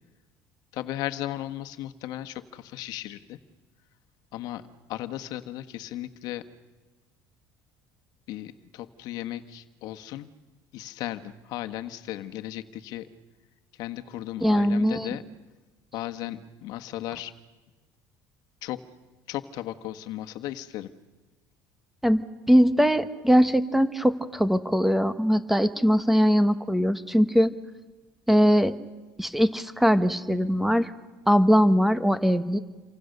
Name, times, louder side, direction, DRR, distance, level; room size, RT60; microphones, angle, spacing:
voice 1, 0.7-3.4 4.3-4.6 4.9-6.5 8.3-10.3 10.7-13.1 13.8-15.2 15.9-17.3 18.6-18.8 19.3-20.9, left 14 dB, 65° left, 9 dB, 1.4 m, -35 dB
voice 2, 14.4-15.1 22.0-27.5 28.3-28.7 29.2-30.9 31.3-32.6, equal, 5° right, 11 dB, 1.2 m, -21 dB
28.5 x 24.5 x 6.7 m, 1.2 s
cardioid pair, 135°, 7 cm